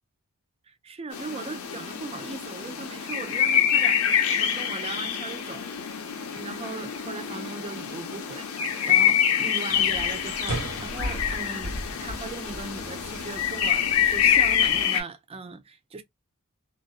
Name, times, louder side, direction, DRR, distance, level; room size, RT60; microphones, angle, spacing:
voice 1, 0.7-5.6 6.4-16.0, right 4 dB, 25° right, 0.4 m, -39 dB
sound 1, 1.1-15.0, left 9 dB, 75° left, 0.6 m, -26 dB
sound 2, 9.7-14.8, right 1 dB, 80° right, 1.4 m, -37 dB
2.6 x 2.1 x 2.3 m
head